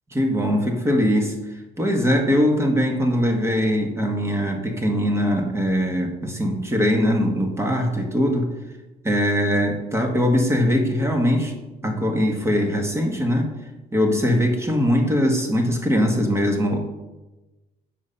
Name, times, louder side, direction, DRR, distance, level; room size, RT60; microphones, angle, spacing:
voice 1, 0.1-1.3 1.8-8.5 9.0-11.5 11.8-13.5 13.9-16.8, equal, 15° right, 3 dB, 1.6 m, -21 dB
7.7 x 5.6 x 5.7 m, 1.1 s
cardioid pair, 110°, 17 cm